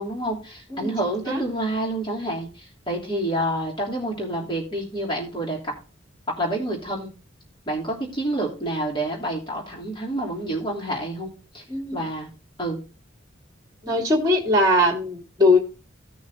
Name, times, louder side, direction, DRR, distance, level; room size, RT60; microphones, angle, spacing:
voice 1, 0.0-5.6 6.3-7.1 7.7-11.6 11.9-12.3 12.6-12.8, right 1 dB, 25° left, -3 dB, 3.2 m, -28 dB
voice 2, 11.7-12.1 13.8-15.6, left 1 dB, 20° right, 1 dB, 2.8 m, -20 dB
17.0 x 6.4 x 2.7 m, 0.34 s
head